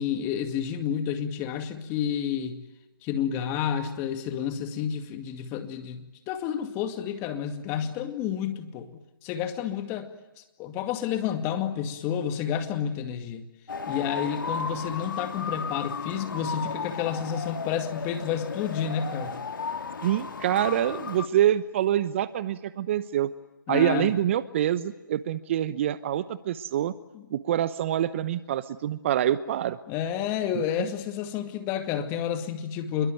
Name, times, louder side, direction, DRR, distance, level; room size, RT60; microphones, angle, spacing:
voice 1, 0.0-2.6 3.0-8.9 9.2-10.1 10.4-13.4 13.9-19.3 23.7-24.1 27.1-27.2 29.9-33.1, left 8 dB, 20° left, 7 dB, 2.2 m, -30 dB
sound 1, 13.7-21.3, left 5 dB, 65° left, 2.4 m, -34 dB
voice 2, 20.0-23.3 23.7-26.9 27.3-29.8 30.8-30.9, right 11 dB, 35° right, 15 dB, 0.9 m, -26 dB
27.5 x 22.5 x 9.2 m, 1.0 s
figure-of-eight pair, 145°, 12 cm